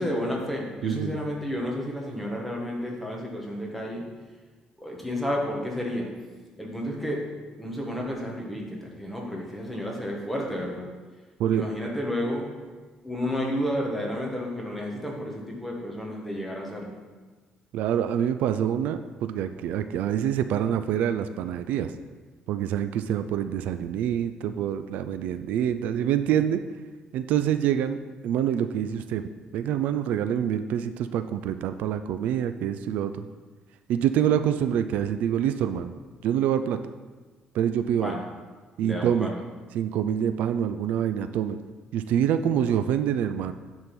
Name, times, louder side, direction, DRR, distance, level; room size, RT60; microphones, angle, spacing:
voice 1, 0.0-4.1 4.8-6.1 6.6-7.2 7.6-10.9 11.5-12.5 13.0-17.0 38.0-38.2 38.8-39.4, equal, 5° left, -2 dB, 1.4 m, -31 dB
voice 2, 0.8-1.2 11.4-11.7 17.7-21.9 22.5-26.6 27.1-28.0 28.2-33.3 33.9-35.9 36.2-36.8 37.5-38.1 38.8-39.3 39.7-41.6 41.9-43.5, right 9 dB, 80° right, 10 dB, 0.4 m, -26 dB
9.5 x 3.8 x 5.9 m, 1.3 s
cardioid pair, 150°, 3 cm